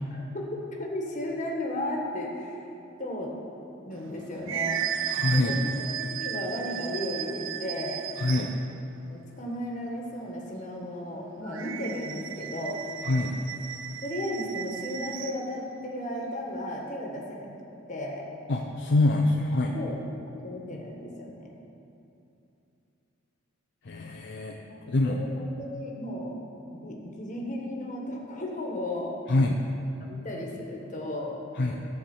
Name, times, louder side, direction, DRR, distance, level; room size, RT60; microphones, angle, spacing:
voice 1, 0.1-2.6 3.0-3.3 3.9-4.9 5.3-8.1 9.1-12.8 14.0-17.5 17.9-18.3 19.7-21.6 24.6-26.4 26.7-29.2 30.0-31.4, left 1 dB, 35° left, -1 dB, 1.4 m, -35 dB
sound 1, 4.0-8.7 11.5-15.5, right 10 dB, 65° right, 0.4 m, -35 dB
voice 2, 5.1-5.6 8.2-8.6 13.0-13.4 18.5-19.8 23.8-24.6 24.9-25.2 29.3-29.6 31.6-31.9, left 2 dB, 55° left, 1 dB, 0.5 m, -25 dB
13.0 x 4.5 x 7.1 m, 2.8 s
head